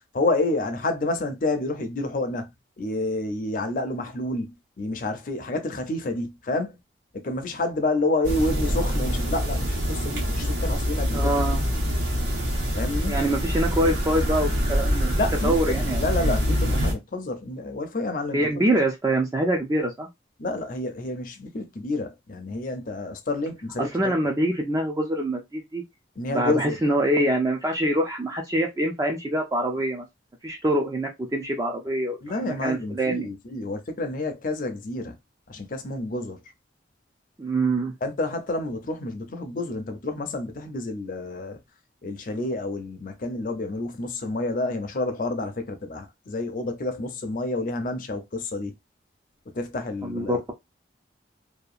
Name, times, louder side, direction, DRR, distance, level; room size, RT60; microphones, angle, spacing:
voice 1, 0.1-4.5 4.8-6.8 7.1-11.3 12.8-13.1 15.2-18.5 20.4-24.1 26.2-26.8 32.2-35.2 35.5-36.4 38.0-41.6 42.0-48.7 49.5-50.4, left 2 dB, 50° left, 0.5 m, -29 dB
sound 1, 8.2-16.9, equal, 85° right, 1.3 m, -25 dB
voice 2, 11.1-11.6 13.1-15.1 15.4-16.3 18.3-20.1 23.8-25.8 26.3-30.1 30.4-33.3 37.4-37.9 50.0-50.5, right 1 dB, 20° right, 0.4 m, -25 dB
2.7 x 2.3 x 2.4 m
head